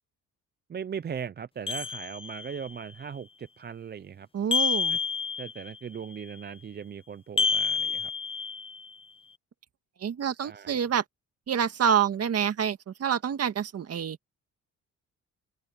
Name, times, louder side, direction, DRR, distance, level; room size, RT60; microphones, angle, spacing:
voice 1, 0.7-4.3 5.4-8.1 10.4-10.8, right 7 dB, 35° right, 0.6 m, -38 dB
sound 1, 1.7-2.7 4.5-5.8 7.4-8.9, left 5 dB, 20° left, 0.7 m, -29 dB
voice 2, 4.3-5.0 10.0-11.0 11.5-14.2, right 8 dB, 55° right, 1.9 m, -27 dB
open air
cardioid pair, 90°, 30 cm